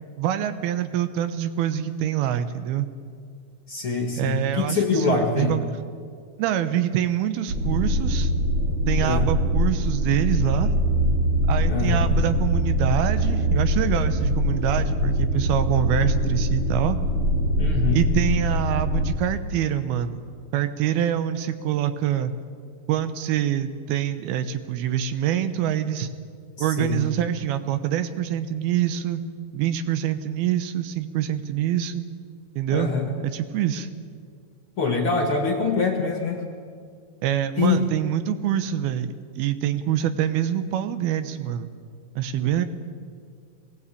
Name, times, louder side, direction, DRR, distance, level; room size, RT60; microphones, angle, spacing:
voice 1, 0.2-2.9 4.2-5.6 6.4-8.3 8.9-10.7 11.5-17.0 17.9-20.2 20.5-22.3 22.9-26.1 26.6-29.2 29.5-32.0 32.6-32.9 33.2-33.9 37.2-41.7 42.2-42.7, right 10 dB, 80° right, 10 dB, 2.9 m, -25 dB
voice 2, 3.7-5.5 9.0-9.3 11.7-12.1 17.6-18.0 26.6-27.0 32.7-33.1 34.8-36.4 37.6-37.8, left 4 dB, 45° left, 2 dB, 1.9 m, -24 dB
sound 1, 7.5-19.1, equal, 45° right, 2.1 m, -23 dB
21.0 x 18.0 x 8.5 m, 2.1 s
omnidirectional pair, 4.4 m